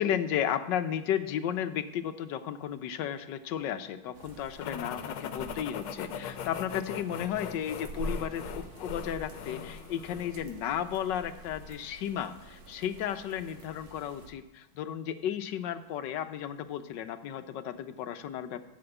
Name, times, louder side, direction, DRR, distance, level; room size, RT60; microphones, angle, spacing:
voice 1, 0.0-18.6, left 9 dB, 70° left, 10 dB, 1.3 m, -34 dB
sound 1, 4.1-14.3, right 1 dB, 80° right, 2.1 m, -46 dB
sound 2, 4.6-10.4, left 8 dB, 90° left, 1.6 m, -40 dB
13.5 x 6.1 x 8.0 m, 0.96 s
omnidirectional pair, 2.2 m